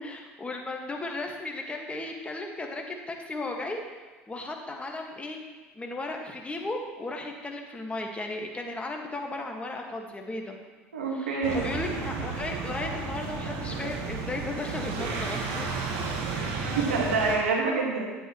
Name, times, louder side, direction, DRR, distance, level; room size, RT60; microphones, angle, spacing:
voice 1, 0.0-3.8 4.3-5.4 5.7-10.6 11.1-15.7, left 2 dB, 20° left, 2 dB, 1.5 m, -35 dB
voice 2, 10.9-11.7 16.6-18.1, right 4 dB, 85° right, -1 dB, 1.6 m, -27 dB
sound 1, 11.4-17.4, right 4 dB, 65° right, 1.5 m, -32 dB
10.5 x 9.0 x 3.0 m, 1.3 s
hypercardioid pair, 65°, 7 cm